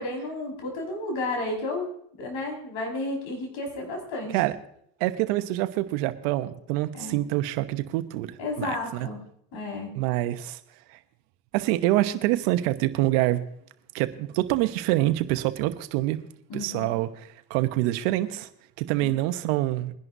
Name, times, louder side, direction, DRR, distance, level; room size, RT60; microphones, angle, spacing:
voice 1, 0.0-1.9 2.2-4.4 6.9-7.2 8.4-9.2 9.5-9.9 16.5-16.9 19.0-19.2, left 2 dB, 65° left, 1 dB, 5.4 m, -32 dB
voice 2, 5.0-9.1 9.9-10.6 10.9-11.0 11.5-13.4 13.9-16.2 16.5-18.5 18.8-19.9, right 16 dB, 80° right, 11 dB, 1.1 m, -26 dB
22.5 x 11.0 x 2.7 m, 0.69 s
supercardioid pair, 80°, 50 cm